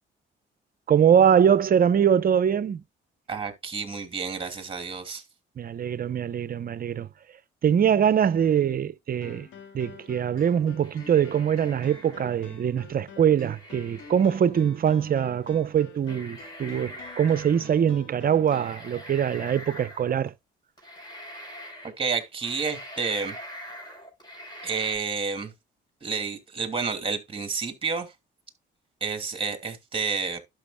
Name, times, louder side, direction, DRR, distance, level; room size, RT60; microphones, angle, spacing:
voice 1, 0.9-2.8 5.6-7.1 7.6-9.5 9.7-20.3, right 8 dB, 45° right, 0.7 m, -23 dB
voice 2, 3.3-5.2 22.0-23.3 24.6-25.5 26.0-28.1 29.0-30.4, right 5 dB, 25° right, 2.7 m, -30 dB
sound 1, 9.2-18.8, left 5 dB, 85° left, 2.3 m, -48 dB
sound 2, 10.8-12.5 13.4-14.3 15.4-15.5 16.0-17.7 18.5-20.3 20.8-21.9 22.2-25.0, equal, 20° left, 5.2 m, -43 dB
11.5 x 6.2 x 2.2 m
cardioid pair, 90°, 20 cm